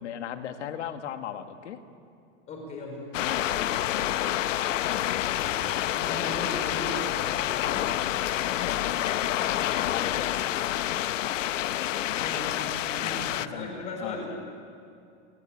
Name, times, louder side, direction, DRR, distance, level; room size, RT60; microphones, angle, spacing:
voice 1, 0.0-1.8 3.2-4.4 8.4-10.3 13.0-13.8 14.0-14.4, left 9 dB, 65° left, 7 dB, 2.0 m, -38 dB
voice 2, 2.5-3.1 5.1-7.9 12.1-14.3, left 2 dB, 20° left, 1 dB, 5.3 m, -38 dB
sound 1, 3.1-13.5, left 13 dB, 80° left, 1.0 m, -28 dB
27.5 x 21.0 x 9.0 m, 2.5 s
supercardioid pair, 180°, 37 cm